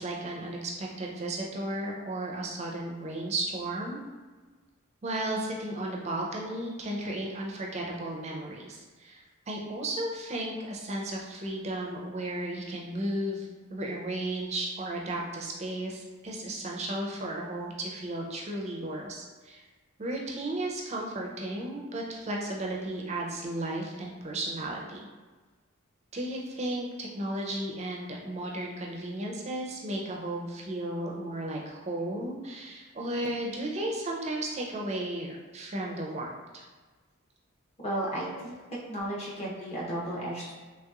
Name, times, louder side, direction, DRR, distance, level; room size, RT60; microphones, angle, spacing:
voice 1, 0.0-4.0 5.0-19.6 20.0-25.1 26.1-36.6 38.3-38.4, right 1 dB, 30° right, -1 dB, 0.4 m, -34 dB
voice 2, 37.8-38.6 38.9-40.5, right 1 dB, 30° left, -6 dB, 0.7 m, -34 dB
3.1 x 2.9 x 2.3 m, 1.3 s
head